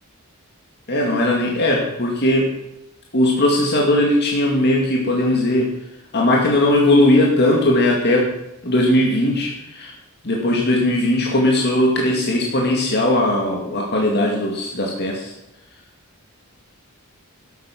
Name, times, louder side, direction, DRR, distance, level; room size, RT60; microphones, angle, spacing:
voice 1, 0.9-2.5 3.1-5.7 6.1-8.3 8.6-9.9 10.2-15.3, left 1 dB, 50° left, -1 dB, 2.2 m, -18 dB
12.5 x 10.5 x 6.0 m, 0.87 s
head